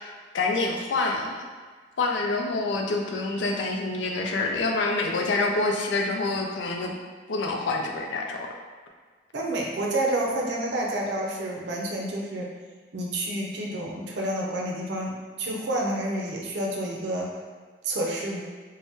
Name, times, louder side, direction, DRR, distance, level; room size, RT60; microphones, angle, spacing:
voice 1, 0.0-1.5 2.0-6.9 7.3-8.5, left 3 dB, 90° left, 2 dB, 0.4 m, -27 dB
voice 2, 9.3-12.5 12.9-17.3 17.8-18.4, right 1 dB, 70° right, -2 dB, 0.5 m, -29 dB
2.6 x 2.1 x 3.5 m, 1.5 s
head